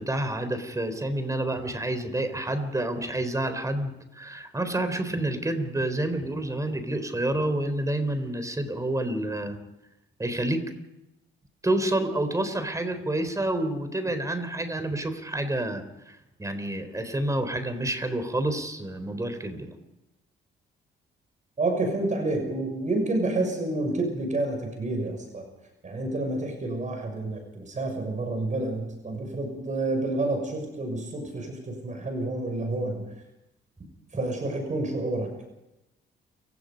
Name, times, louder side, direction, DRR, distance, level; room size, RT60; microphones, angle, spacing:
voice 1, 0.0-9.6 10.2-10.6 11.6-19.7, right 1 dB, 15° right, 9 dB, 4.0 m, -29 dB
voice 2, 21.6-25.5 25.8-33.1 34.1-35.3, right 2 dB, 40° right, 4 dB, 6.5 m, -29 dB
29.0 x 17.0 x 5.3 m, 0.93 s
cardioid pair, 90°, 20 cm